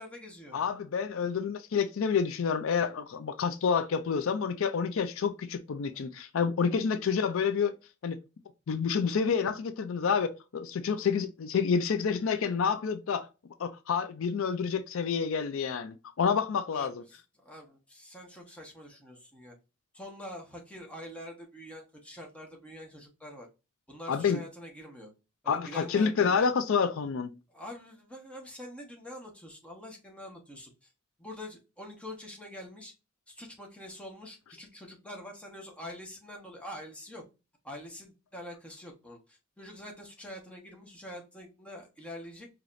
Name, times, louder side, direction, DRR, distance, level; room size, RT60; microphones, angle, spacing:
voice 1, 0.0-0.6 16.7-16.9 17.4-19.5 19.9-23.5 23.9-25.1 25.4-26.5 27.5-30.9 31.2-32.9 33.3-37.2 37.6-42.5, left 1 dB, 5° left, 1.2 m, -45 dB
voice 2, 0.5-7.7 8.0-8.2 8.7-13.3 13.6-17.0 24.1-24.4 25.5-27.4, left 6 dB, 70° left, 0.4 m, -28 dB
4.8 x 2.9 x 2.5 m
head